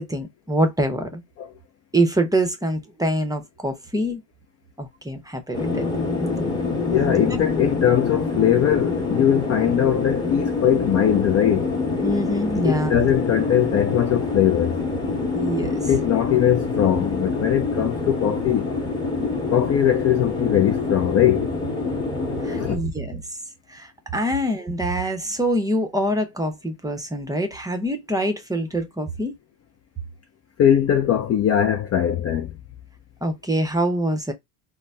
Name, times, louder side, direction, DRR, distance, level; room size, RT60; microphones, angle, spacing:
voice 1, 0.0-1.2 1.9-4.2 4.8-5.8 7.3-7.4 12.0-13.1 15.3-15.8 22.4-23.2 23.7-29.3 33.2-34.3, right 1 dB, 10° right, 0.6 m, -25 dB
sound 1, 5.5-22.8, left 3 dB, 10° left, 0.9 m, -26 dB
voice 2, 6.9-11.7 12.6-14.8 15.9-18.8 19.5-21.5 22.4-22.8 30.6-32.5, left 10 dB, 35° left, 0.4 m, -20 dB
3.9 x 2.0 x 2.2 m
hypercardioid pair, 75°, 46 cm